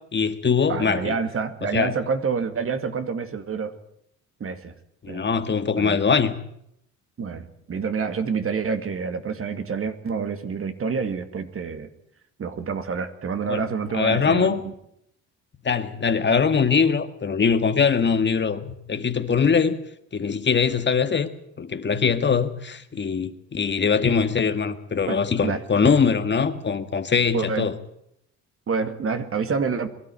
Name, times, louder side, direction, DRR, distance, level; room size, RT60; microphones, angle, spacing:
voice 1, 0.1-1.2 1.7-1.9 5.0-6.4 13.5-13.6 13.9-14.6 15.6-19.8 20.1-21.3 21.6-27.8, left 6 dB, 35° left, 9 dB, 1.8 m, -22 dB
voice 2, 0.7-3.7 4.4-4.7 5.1-5.3 5.8-6.0 7.2-11.9 12.4-14.7 25.1-25.6 27.3-27.7 28.7-29.9, right 5 dB, 45° right, 9 dB, 2.3 m, -28 dB
22.5 x 13.0 x 9.8 m, 0.73 s
cardioid pair, 90°, 30 cm